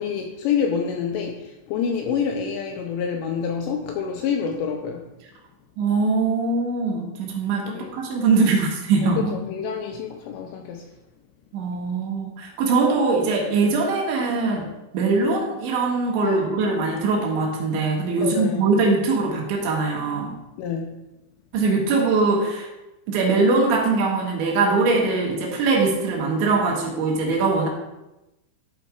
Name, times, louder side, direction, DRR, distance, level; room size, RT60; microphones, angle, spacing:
voice 1, 0.0-5.1 7.7-7.9 9.0-10.9 16.2-16.5 18.2-18.7 20.6-21.0, left 7 dB, 80° left, 3 dB, 2.5 m, -27 dB
voice 2, 5.8-9.3 11.5-14.7 14.9-20.4 21.5-22.7 23.1-27.7, right 3 dB, 70° right, -1 dB, 3.6 m, -22 dB
12.0 x 4.4 x 5.0 m, 0.96 s
omnidirectional pair, 5.6 m